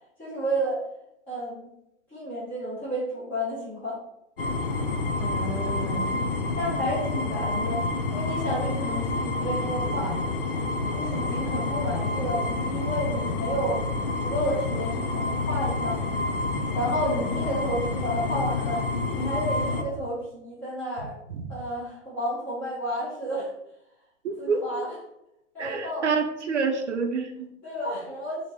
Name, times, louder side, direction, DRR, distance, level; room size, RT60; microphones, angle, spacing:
voice 1, 0.2-0.8 1.3-1.7 2.1-4.0 6.6-10.2 10.9-13.8 14.2-16.0 16.7-18.8 19.1-21.2 21.5-23.5 24.4-24.9 25.5-26.1 27.6-28.4, equal, 5° left, -11 dB, 0.9 m, -31 dB
sound 1, 4.4-19.8, left 3 dB, 45° left, 0.5 m, -28 dB
voice 2, 5.2-6.1 21.4-21.5 24.2-24.9 25.6-27.5, right 4 dB, 60° right, 6 dB, 0.7 m, -28 dB
3.6 x 2.9 x 4.7 m, 0.82 s
hypercardioid pair, 170°, 40 cm